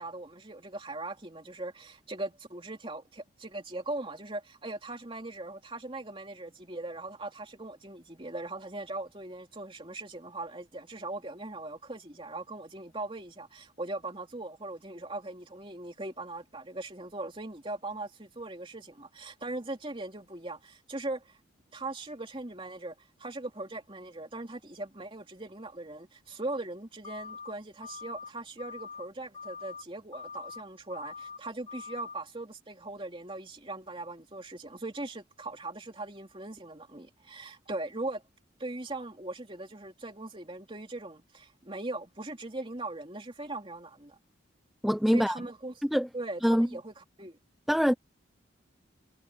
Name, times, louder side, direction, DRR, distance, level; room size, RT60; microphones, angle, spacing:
voice 1, 0.0-21.4 21.7-38.2 38.6-44.2 45.1-45.7 46.1-46.9 47.2-47.4, right 2 dB, 25° right, 3.1 m, -40 dB
sound 1, 27.0-27.5 27.8-28.3 28.6-29.1 29.3-29.8 30.1-30.6 30.9-31.4 31.7-32.2, left 5 dB, 25° left, 1.7 m, -43 dB
voice 2, 44.8-45.4 45.8-46.1 46.4-46.7 47.7-47.9, equal, ahead, 0.5 m, -24 dB
head